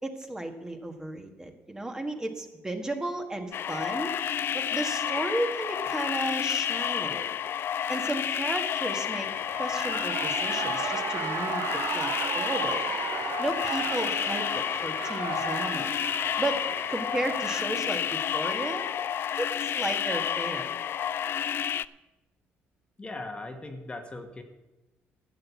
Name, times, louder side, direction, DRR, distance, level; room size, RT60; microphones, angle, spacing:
voice 1, 0.0-4.1 4.5-7.3 7.9-9.3 9.6-11.7 11.9-12.9 13.4-15.9 16.4-16.6 16.9-18.9 19.4-20.8, right 1 dB, 15° right, 5 dB, 1.4 m, -34 dB
sound 1, 3.5-21.8, left 9 dB, 50° left, 0.3 m, -30 dB
Shout / Cheering, 9.2-18.2, right 10 dB, 70° right, 0.6 m, -36 dB
voice 2, 23.0-24.4, left 2 dB, 20° left, 6 dB, 1.3 m, -39 dB
12.5 x 6.6 x 8.3 m, 1.0 s
cardioid pair, 100°, 5 cm